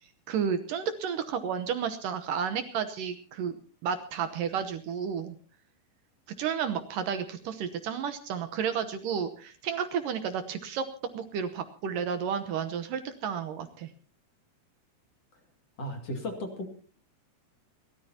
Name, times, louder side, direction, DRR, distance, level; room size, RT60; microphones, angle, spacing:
voice 1, 0.3-3.6 3.8-5.4 6.4-10.9 11.1-13.9, right 7 dB, 70° right, 10 dB, 2.3 m, -32 dB
voice 2, 15.8-16.8, left 1 dB, 45° left, 4 dB, 3.1 m, -35 dB
29.0 x 13.5 x 2.8 m, 0.40 s
omnidirectional pair, 4.4 m